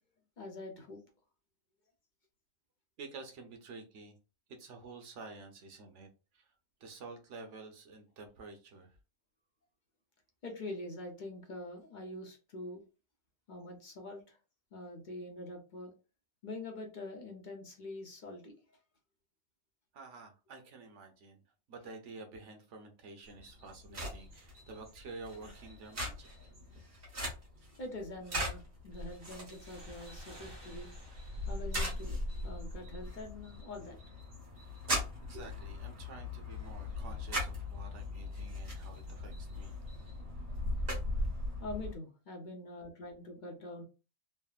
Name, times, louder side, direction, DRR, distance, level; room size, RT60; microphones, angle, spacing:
voice 1, 0.4-1.0 10.4-12.8 13.5-14.4 14.7-15.9 16.4-18.6 27.8-30.9 31.5-34.0 41.6-43.8, left 2 dB, 50° left, 1 dB, 0.7 m, -44 dB
voice 2, 3.0-4.2 4.5-6.5 6.8-9.0 19.9-21.4 21.7-26.5 27.6-27.7 35.2-39.7, right 3 dB, 90° right, 4 dB, 1.1 m, -50 dB
sound 1, 23.3-41.9, left 1 dB, 55° right, 1.5 m, -40 dB
sound 2, 29.5-32.9, equal, 25° right, 0.7 m, -55 dB
3.3 x 2.1 x 2.3 m, 0.32 s
omnidirectional pair, 1.2 m